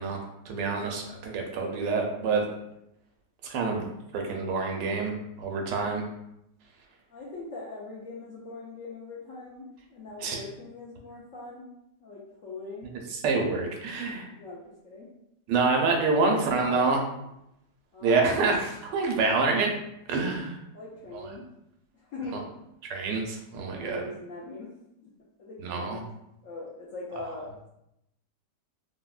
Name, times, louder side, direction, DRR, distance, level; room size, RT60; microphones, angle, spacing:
voice 1, 0.0-2.5 3.4-3.9 4.1-6.1 10.2-10.4 13.1-14.3 15.5-17.0 18.0-19.7 20.1-20.5 22.3-22.4 22.9-24.0 25.6-26.0, right 4 dB, 90° right, 1 dB, 1.2 m, -27 dB
voice 2, 7.1-11.7 12.0-12.9 13.9-15.1 16.2-17.0 17.9-18.4 20.3-20.5 20.7-21.5 21.9-22.4 23.7-24.7 25.0-25.1 25.4-26.1 26.4-27.7, left 3 dB, 70° left, -5 dB, 0.8 m, -41 dB
3.5 x 2.1 x 2.3 m, 0.83 s
omnidirectional pair, 1.8 m